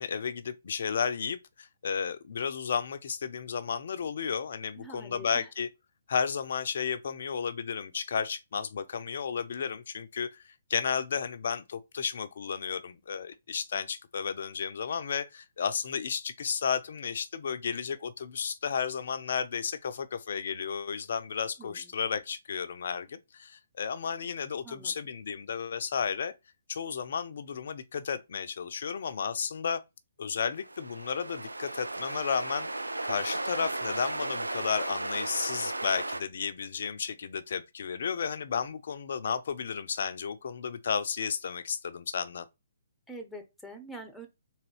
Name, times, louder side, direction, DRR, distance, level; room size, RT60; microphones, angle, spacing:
voice 1, 0.0-5.7 6.1-26.3 26.7-29.8 30.2-42.5, left 6 dB, 55° left, 0.5 m, -33 dB
voice 2, 4.7-5.5 21.6-21.9 24.6-24.9 43.1-44.3, right 1 dB, ahead, 0.8 m, -45 dB
sound 1, 30.6-36.2, right 2 dB, 85° right, 0.4 m, -35 dB
3.9 x 2.9 x 3.1 m
figure-of-eight pair, 130°, 0 cm